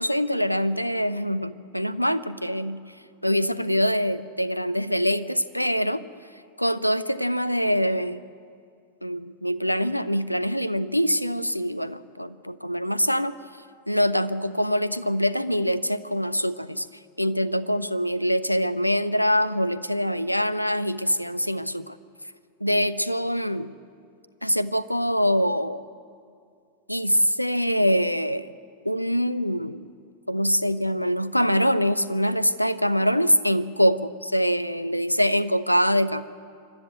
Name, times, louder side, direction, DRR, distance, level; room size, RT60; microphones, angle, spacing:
voice 1, 0.0-2.8 3.2-6.0 6.6-8.2 9.0-13.4 13.9-16.9 17.2-22.0 22.6-23.7 24.4-25.8 26.9-28.5 28.8-29.8 30.3-36.2, equal, 90° left, 15 dB, 0.6 m, -24 dB
26.5 x 12.5 x 8.0 m, 2.3 s
figure-of-eight pair, 90°, 0 cm